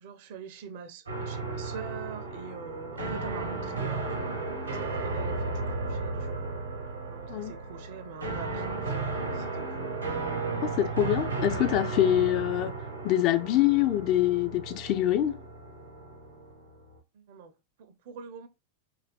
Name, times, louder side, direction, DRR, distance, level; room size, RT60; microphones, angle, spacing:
voice 1, 0.0-6.5 7.0-10.0 17.1-18.5, right 6 dB, 50° right, 0.5 m, -44 dB
sound 1, 1.1-17.0, right 3 dB, 80° right, 0.8 m, -34 dB
voice 2, 10.6-12.7 13.0-15.4, left 13 dB, 40° left, 0.3 m, -25 dB
2.7 x 2.5 x 3.3 m
figure-of-eight pair, 90°, 0 cm